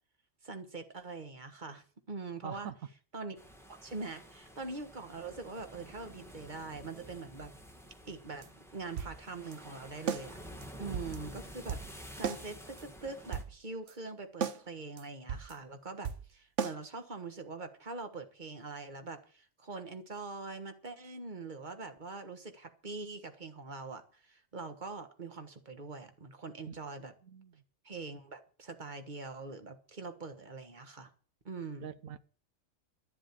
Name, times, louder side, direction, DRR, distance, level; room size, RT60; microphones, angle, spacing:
voice 1, 0.4-2.7 3.1-3.4 3.8-7.5 8.1-8.5 8.7-10.4 10.8-27.1 27.8-31.1 31.5-31.9, right 3 dB, 35° right, 1.6 m, -43 dB
voice 2, 2.4-2.8 26.6-26.7 27.2-27.6 31.8-32.2, right 8 dB, 85° right, 1.2 m, -44 dB
sound 1, 3.4-13.4, equal, ahead, 1.8 m, -50 dB
sound 2, 8.4-8.5 9.0-9.2 9.5-9.6 10.1-10.3 10.6-10.7 10.9-11.2 11.7-11.9 12.2-12.4 12.8-12.9 13.2-13.5 13.9-14.0 14.4-14.6 15.0-15.1 15.3-15.5 16.0-16.3 16.6-16.7, right 7 dB, 65° right, 1.2 m, -35 dB
12.0 x 7.5 x 8.6 m
omnidirectional pair, 1.4 m